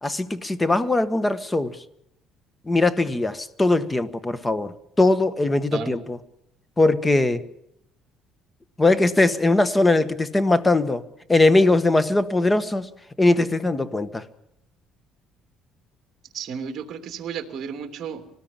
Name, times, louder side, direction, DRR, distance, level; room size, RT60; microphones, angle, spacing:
voice 1, 0.0-1.7 2.7-6.2 6.8-7.4 8.8-11.0 11.3-12.9 13.2-14.2, left 2 dB, 15° left, 1.4 m, -20 dB
voice 2, 16.3-18.2, right 7 dB, 50° right, 3.1 m, -33 dB
25.5 x 19.0 x 7.4 m
cardioid pair, 135°, 0 cm